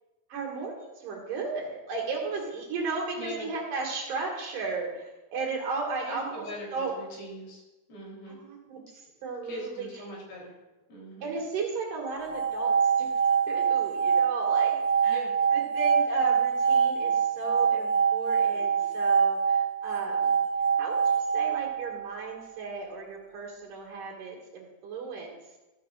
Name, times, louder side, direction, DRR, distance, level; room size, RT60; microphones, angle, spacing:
voice 1, 0.3-6.9 8.4-9.9 11.2-13.1 13.5-15.2 15.5-20.4 20.8-25.4, right 4 dB, 65° right, -1 dB, 3.4 m, -35 dB
voice 2, 3.2-3.5 6.1-7.6 7.9-8.4 9.4-10.5 10.9-11.3 15.1-15.3, equal, 85° left, -3 dB, 5.5 m, -41 dB
sound 1, 12.2-22.4, right 6 dB, 50° left, 3.5 m, -25 dB
14.5 x 14.5 x 2.5 m, 1.1 s
omnidirectional pair, 4.2 m